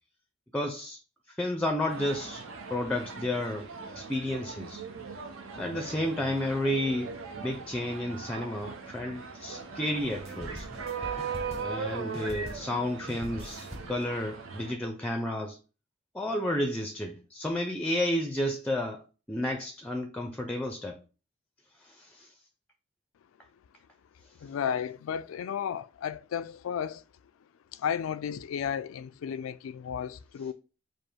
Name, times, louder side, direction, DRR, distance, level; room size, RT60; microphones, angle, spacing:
voice 1, 0.5-1.0 1.4-2.4 2.7-3.7 3.9-4.8 5.6-10.7 11.5-15.6 16.1-21.0 21.8-22.3, left 1 dB, 5° left, 0.4 m, -31 dB
sound 1, 1.9-14.7, right 5 dB, 85° right, 0.8 m, -39 dB
sound 2, 10.0-11.9 12.1-12.8 13.1-14.0, equal, 30° right, 1.1 m, -43 dB
voice 2, 24.4-27.0 27.7-30.5, left 8 dB, 90° left, 0.3 m, -33 dB
5.2 x 2.0 x 4.4 m
head